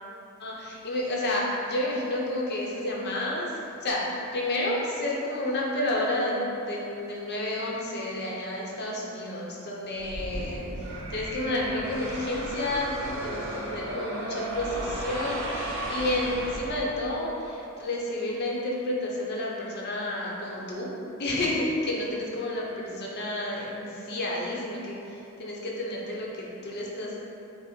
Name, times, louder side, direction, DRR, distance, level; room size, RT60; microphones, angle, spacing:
voice 1, 0.4-3.5 3.8-4.0 4.3-20.9 21.2-27.2, left 1 dB, 50° left, -3 dB, 0.7 m, -30 dB
sound 1, 10.0-17.2, right 1 dB, 65° right, 0.6 m, -35 dB
5.5 x 2.1 x 4.2 m, 2.8 s
head